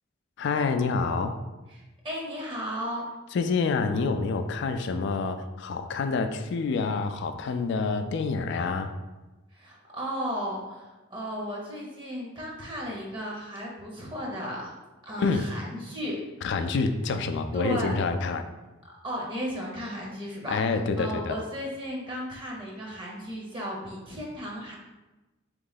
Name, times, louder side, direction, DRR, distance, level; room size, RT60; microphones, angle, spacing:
voice 1, 0.4-1.4 3.3-8.9 15.2-15.5 16.4-18.4 20.5-21.4, left 4 dB, 65° left, 8 dB, 0.3 m, -27 dB
voice 2, 1.7-3.0 9.5-14.7 15.0-16.2 17.5-18.0 18.8-20.6 21.0-24.8, equal, 25° right, -2 dB, 0.7 m, -35 dB
3.7 x 3.1 x 3.9 m, 1.1 s
head